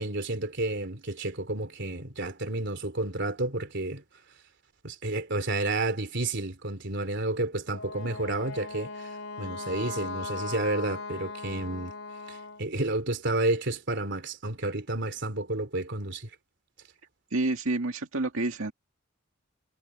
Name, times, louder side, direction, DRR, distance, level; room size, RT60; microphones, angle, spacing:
voice 1, 0.0-4.0 4.8-9.1 9.4-11.9 12.3-16.3, right 2 dB, 60° right, 3.5 m, -31 dB
Wind instrument woodwind instrument, 7.7-12.7, left 3 dB, 75° left, 3.8 m, -38 dB
voice 2, 17.3-18.7, right 2 dB, 85° right, 2.1 m, -28 dB
head